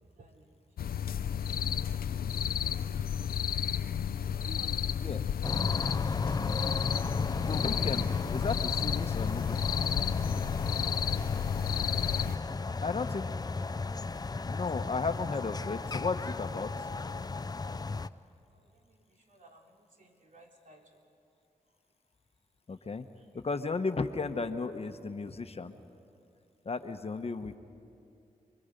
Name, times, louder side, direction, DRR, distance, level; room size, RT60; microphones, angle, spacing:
sound 1, 0.8-12.4, left 8 dB, 85° left, 0.5 m, -32 dB
voice 1, 3.8-5.0 12.3-12.7 19.3-19.6 20.0-20.8, right 2 dB, 60° right, 0 dB, 3.2 m, -55 dB
sound 2, 5.4-18.1, left 3 dB, 25° left, 0.5 m, -35 dB
voice 2, 7.4-8.0 8.3-9.6 12.8-13.2 14.5-16.7 22.7-23.1 23.3-25.8 26.6-27.6, left 4 dB, 45° left, 8 dB, 1.0 m, -34 dB
29.0 x 23.0 x 5.3 m, 2.6 s
cardioid pair, 70°, 15 cm